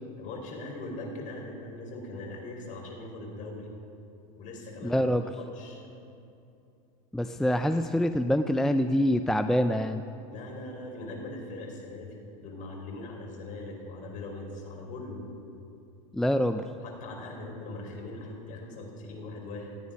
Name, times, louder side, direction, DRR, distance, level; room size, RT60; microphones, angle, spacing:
voice 1, 0.2-3.7 4.4-5.0 5.4-5.8 10.3-15.2 16.8-19.7, left 2 dB, 45° left, 0 dB, 4.9 m, -40 dB
voice 2, 4.8-5.3 7.1-10.0 16.1-16.6, equal, ahead, 9 dB, 0.4 m, -25 dB
19.5 x 14.5 x 5.2 m, 2.6 s
supercardioid pair, 125°, 19 cm